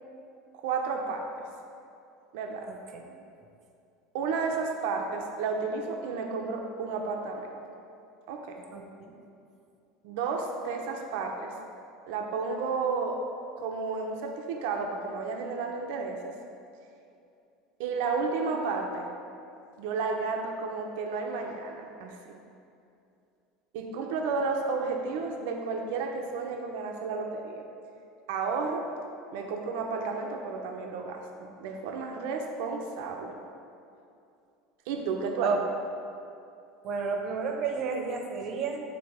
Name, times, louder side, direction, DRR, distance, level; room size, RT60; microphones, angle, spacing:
voice 1, 0.5-1.5 2.3-2.7 4.1-7.6 8.3-8.6 10.0-11.5 12.1-13.2 13.6-16.3 17.8-19.1 19.8-22.4 23.7-27.6 28.3-28.9 29.3-33.4 34.9-35.6, right 4 dB, 75° right, 3 dB, 0.6 m, -32 dB
voice 2, 2.7-3.0 8.7-9.1 35.4-35.6 36.8-38.8, right 4 dB, 45° right, 3 dB, 0.8 m, -31 dB
8.1 x 3.4 x 4.8 m, 2.6 s
supercardioid pair, 140°, 0 cm